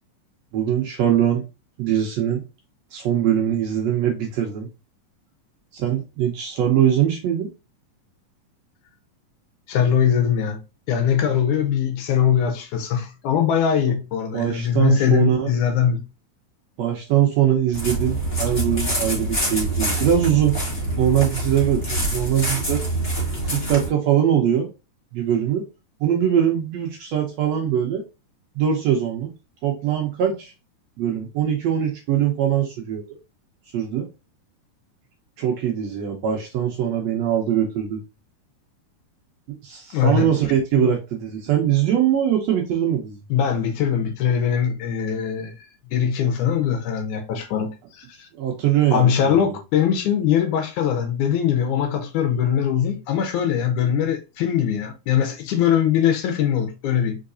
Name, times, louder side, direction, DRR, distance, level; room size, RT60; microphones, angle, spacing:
voice 1, 0.5-1.4 1.8-2.4 2.9-4.7 5.7-7.5 14.3-15.5 16.8-20.6 21.0-22.8 23.4-24.7 25.1-25.7 26.0-28.0 28.5-29.3 29.6-30.5 31.0-33.0 33.7-34.0 35.4-38.0 39.6-43.2 48.4-49.6, right 10 dB, 75° right, 1.6 m, -22 dB
voice 2, 9.7-10.6 10.9-16.0 39.9-40.3 40.8-40.9 43.3-45.5 45.9-47.7 48.0-48.3 48.9-57.2, left 8 dB, 75° left, 2.2 m, -21 dB
sound 1, 17.7-23.9, right 1 dB, 30° left, 1.8 m, -25 dB
4.7 x 3.9 x 2.5 m
omnidirectional pair, 3.7 m